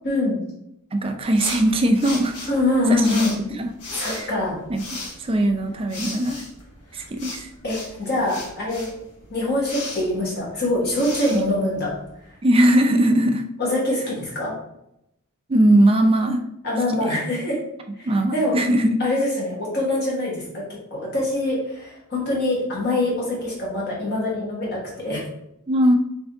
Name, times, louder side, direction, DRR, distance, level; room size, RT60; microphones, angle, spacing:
voice 1, 0.0-0.4 2.5-3.3 3.9-4.6 7.6-8.9 9.3-11.9 13.6-14.5 16.6-17.6 18.0-18.6 19.0-20.6 20.9-25.2, left 1 dB, 50° left, -5 dB, 1.2 m, -24 dB
voice 2, 0.9-2.5 2.9-3.3 3.6-3.7 4.0-4.3 4.7-6.4 6.9-7.5 11.3-11.4 12.4-13.4 15.5-16.4 17.0-17.1 18.1-19.0 25.7-26.0, right 1 dB, 25° right, 5 dB, 0.4 m, -20 dB
sound 1, 1.3-12.3, left 2 dB, 85° left, 1.0 m, -37 dB
3.5 x 2.6 x 3.5 m, 0.80 s
head